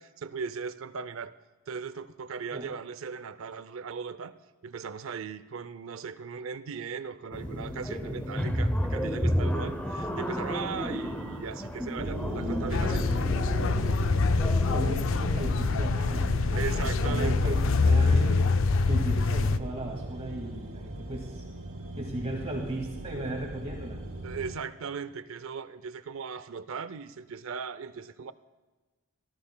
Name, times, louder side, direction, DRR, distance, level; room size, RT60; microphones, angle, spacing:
voice 1, 0.0-1.4 1.7-4.4 4.6-13.1 16.5-17.6 21.6-21.8 24.2-28.3, right 6 dB, 70° right, 0.5 m, -38 dB
sound 1, 7.3-14.8, equal, 5° left, 0.6 m, -32 dB
sound 2, 12.0-24.6, right 1 dB, 85° right, 2.5 m, -38 dB
sound 3, 12.7-19.6, left 3 dB, 65° left, 0.4 m, -25 dB
voice 2, 14.7-16.8 17.0-17.6 17.8-18.5 18.8-21.4 21.9-24.0, right 1 dB, 30° right, 1.9 m, -36 dB
18.5 x 13.5 x 2.2 m
head